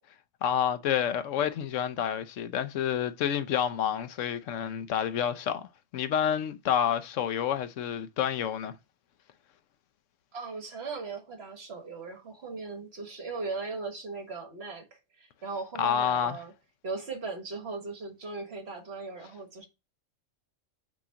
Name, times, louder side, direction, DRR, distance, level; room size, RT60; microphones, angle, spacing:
voice 1, 0.4-5.7 5.9-8.7 15.8-16.4, left 9 dB, 75° left, 1.0 m, -29 dB
voice 2, 10.3-16.5 16.8-19.7, right 3 dB, 55° right, 1.7 m, -38 dB
6.2 x 2.9 x 5.7 m
omnidirectional pair, 1.3 m